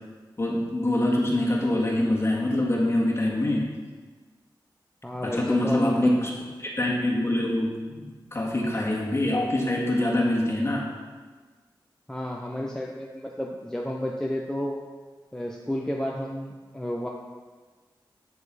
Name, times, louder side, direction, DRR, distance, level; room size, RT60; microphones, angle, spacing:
voice 1, 0.4-3.7 5.2-6.3 6.6-8.0 8.3-10.9, left 1 dB, 30° left, -3 dB, 1.9 m, -24 dB
voice 2, 5.0-6.1 12.1-14.9 15.3-17.1, equal, 5° left, -1 dB, 0.7 m, -31 dB
8.5 x 7.2 x 4.2 m, 1.4 s
wide cardioid pair, 90°, 8 cm